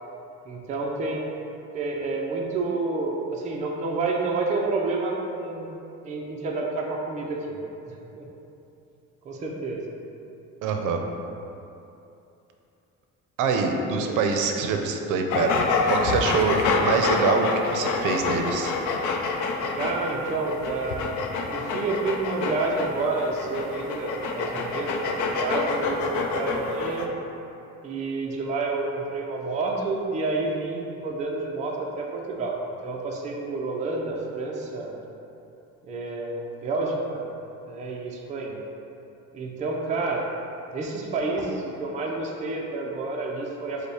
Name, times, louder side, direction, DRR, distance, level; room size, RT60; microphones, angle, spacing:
voice 1, 0.5-1.4 1.7-5.7 6.0-7.6 8.2-8.3 9.2-9.8 13.9-14.2 19.7-21.2 21.5-27.1 27.8-34.9 35.8-37.3 37.7-38.6 39.3-40.3 40.7-43.9, right 3 dB, 25° right, -1 dB, 0.4 m, -29 dB
voice 2, 10.6-11.0 13.4-15.5 15.8-18.7, right 4 dB, 80° right, 4 dB, 0.5 m, -25 dB
sound 1, 15.3-27.1, left 4 dB, 75° left, 0.5 m, -27 dB
5.2 x 2.1 x 4.7 m, 2.8 s
cardioid pair, 165°, 31 cm